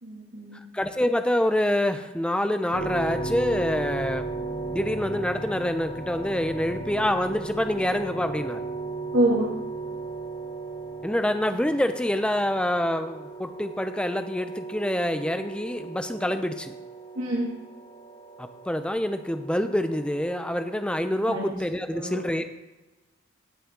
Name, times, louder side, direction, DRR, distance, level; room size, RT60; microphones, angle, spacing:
voice 1, 0.0-0.6 9.1-9.5 17.1-17.4 21.3-21.5 21.9-22.2, right 1 dB, 80° right, -8 dB, 2.6 m, -25 dB
voice 2, 0.7-4.3 4.7-8.6 11.0-16.7 18.4-22.4, left 1 dB, 5° left, 8 dB, 0.6 m, -26 dB
sound 1, 2.7-21.5, right 3 dB, 75° left, 3.2 m, -36 dB
17.0 x 5.6 x 3.8 m, 1.1 s
head